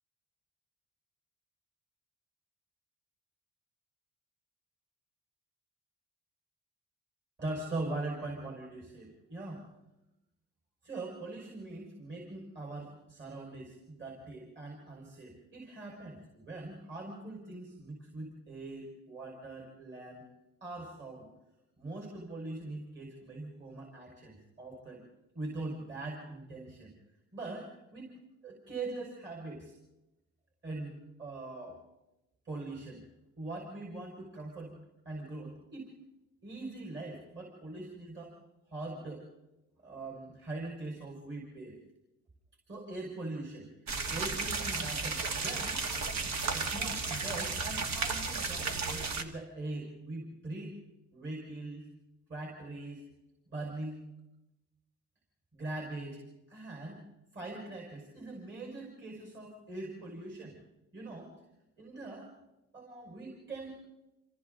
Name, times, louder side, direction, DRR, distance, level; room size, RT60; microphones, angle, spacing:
voice 1, 7.4-9.7 10.8-20.2 20.6-21.3 21.8-25.0 25.3-26.9 27.3-28.1 28.4-29.7 30.6-31.8 32.4-33.0 33.4-34.7 35.0-35.9 36.4-38.3 38.7-39.2 39.8-41.7 42.7-45.8 46.5-50.8 51.1-51.9 52.3-53.0 53.5-54.1 55.5-56.2 56.5-57.0 57.3-60.6 60.9-61.3 61.8-62.3 62.7-63.8, right 2 dB, 40° right, -1 dB, 6.1 m, -42 dB
sound 1, 43.9-49.2, right 4 dB, 65° right, 2.2 m, -34 dB
28.0 x 26.5 x 4.1 m, 0.95 s
cardioid pair, 90°, 30 cm